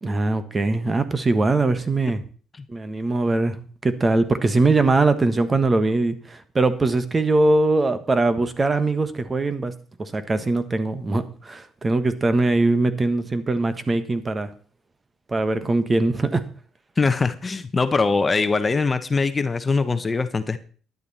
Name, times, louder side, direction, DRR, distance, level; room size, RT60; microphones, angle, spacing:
voice 1, 0.0-2.2 2.7-3.6 3.8-9.7 10.0-14.5 15.3-16.4, right 2 dB, 25° right, 11 dB, 1.5 m, -21 dB
voice 2, 17.0-20.6, left 4 dB, 30° left, 11 dB, 1.0 m, -22 dB
12.0 x 10.5 x 4.3 m, 0.42 s
supercardioid pair, 80°, 0 cm